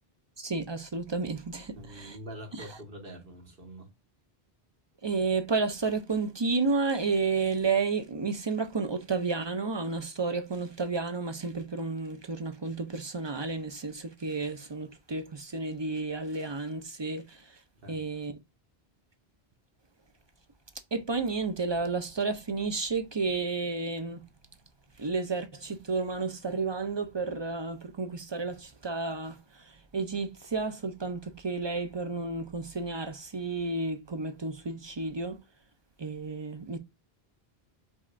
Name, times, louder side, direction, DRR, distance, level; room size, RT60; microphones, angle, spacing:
voice 1, 0.4-2.2 2.6-2.7 5.0-17.6 17.9-18.3 20.9-24.2 25.0-35.4 36.0-36.8, right 4 dB, 35° right, 0.4 m, -31 dB
voice 2, 1.7-3.9 17.8-18.0, right 1 dB, 60° right, 1.7 m, -45 dB
5.2 x 3.5 x 2.5 m
omnidirectional pair, 1.1 m